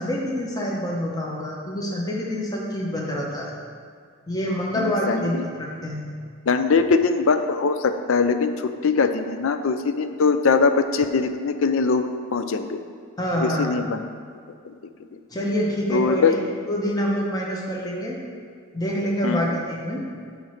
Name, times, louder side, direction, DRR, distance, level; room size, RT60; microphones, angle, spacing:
voice 1, 0.0-3.5 4.3-6.0 13.2-13.7 15.3-16.4 16.7-18.2 18.7-20.0, equal, 15° left, -3 dB, 0.9 m, -26 dB
voice 2, 4.8-5.4 6.5-12.8 13.4-14.0 14.6-14.7 15.1-15.2 15.9-16.3 19.2-19.6, left 4 dB, 60° left, 9 dB, 0.4 m, -22 dB
8.5 x 3.2 x 6.4 m, 2.2 s
head